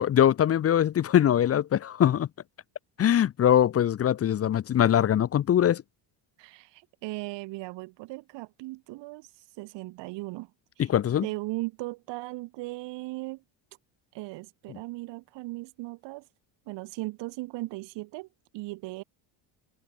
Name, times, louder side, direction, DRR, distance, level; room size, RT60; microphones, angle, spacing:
voice 1, 0.0-2.3 3.0-5.8 10.9-11.3, left 10 dB, 35° left, 0.9 m, -22 dB
voice 2, 6.4-9.3 9.6-10.5 10.8-10.9 11.2-13.4 14.1-16.2 16.7-18.3 18.5-19.0, right 21 dB, 85° right, 6.2 m, -37 dB
cardioid pair, 145°, 42 cm